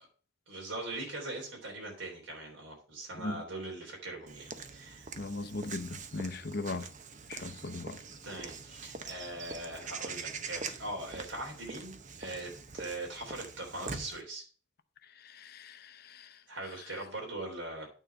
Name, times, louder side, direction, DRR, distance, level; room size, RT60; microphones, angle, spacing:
voice 1, 0.5-5.1 8.2-14.4 16.5-17.9, right 2 dB, 70° right, 3.4 m, -41 dB
Walk footsteps / Bird vocalization bird call bird song, 4.3-14.2, right 5 dB, 40° right, 0.8 m, -44 dB
voice 2, 5.2-6.9 7.3-8.0 15.2-16.4, left 2 dB, 50° left, 0.7 m, -39 dB
9.1 x 4.1 x 6.8 m
head